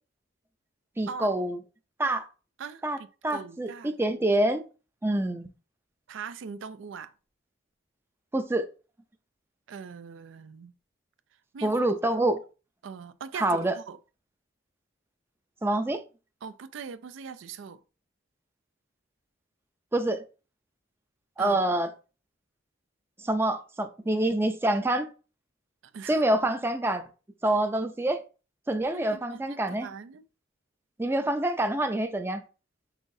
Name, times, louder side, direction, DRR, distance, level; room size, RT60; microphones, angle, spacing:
voice 1, 1.0-1.6 2.0-2.3 2.8-3.0 3.2-4.6 5.0-5.5 8.3-8.7 11.6-12.4 13.3-13.8 15.6-16.0 19.9-20.2 21.4-21.9 23.2-25.1 26.1-27.0 27.4-28.2 28.7-29.9 31.0-32.4, right 1 dB, 10° right, 0.4 m, -26 dB
voice 2, 2.6-3.9 6.1-7.1 9.7-10.7 11.5-11.7 12.1-12.2 12.8-14.0 16.4-17.8 21.4-21.6 25.9-26.2 28.9-30.2, right 6 dB, 75° right, 0.4 m, -41 dB
5.6 x 3.4 x 2.6 m
head